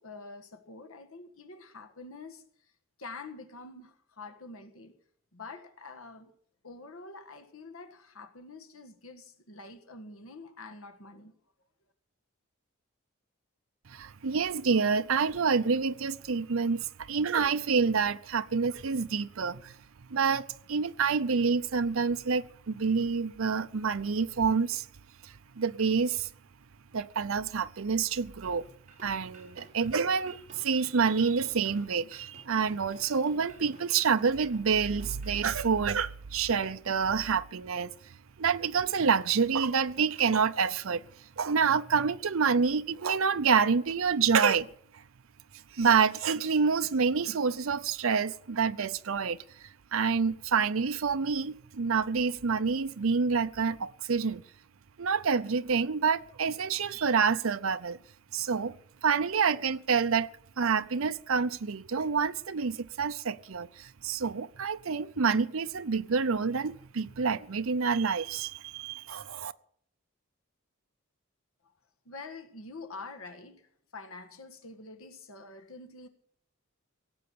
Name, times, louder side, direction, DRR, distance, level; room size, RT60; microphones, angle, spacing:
voice 1, 0.0-2.7 3.0-4.9 5.3-6.3 6.6-11.3 71.6-71.7 72.0-76.1, left 3 dB, 75° left, 1.6 m, -46 dB
voice 2, 13.9-19.7 20.1-24.8 25.6-26.3 26.9-28.7 29.0-37.9 38.4-41.0 41.4-44.7 45.8-49.4 49.9-54.4 55.0-58.0 58.3-58.7 59.0-60.3 60.6-69.5, right 5 dB, 70° right, 0.6 m, -27 dB
sound 1, 28.4-35.8, right 3 dB, 35° right, 4.6 m, -54 dB
17.5 x 7.9 x 8.5 m
head